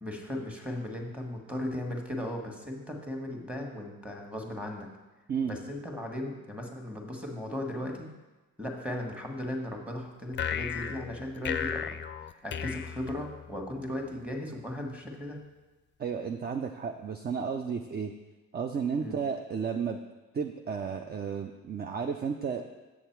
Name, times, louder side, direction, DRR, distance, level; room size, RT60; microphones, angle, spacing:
voice 1, 0.0-4.9 5.4-8.1 8.6-11.9 12.4-15.4 19.0-19.1, left 1 dB, 5° right, 1 dB, 1.5 m, -37 dB
sound 1, 10.3-13.8, left 8 dB, 40° left, 0.4 m, -35 dB
voice 2, 16.0-18.1 18.5-20.0 20.3-22.6, right 6 dB, 35° right, 5 dB, 0.5 m, -33 dB
7.2 x 6.5 x 4.6 m, 1.2 s
cardioid pair, 90°, 30 cm